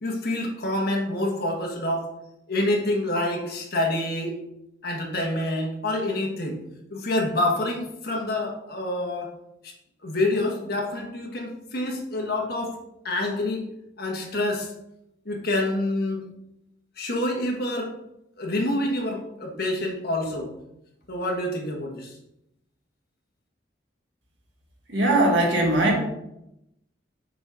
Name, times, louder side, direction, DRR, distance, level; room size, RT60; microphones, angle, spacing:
voice 1, 0.0-2.1 2.5-4.4 4.8-6.6 6.9-9.3 9.6-9.7 10.0-12.7 13.0-13.6 14.0-14.7 15.2-16.2 17.0-17.9 18.4-20.5 21.1-22.2, left 1 dB, 55° left, 0 dB, 1.4 m, -27 dB
voice 2, 24.9-26.0, right 1 dB, 70° right, 0 dB, 1.7 m, -20 dB
6.5 x 4.1 x 4.9 m, 0.84 s
head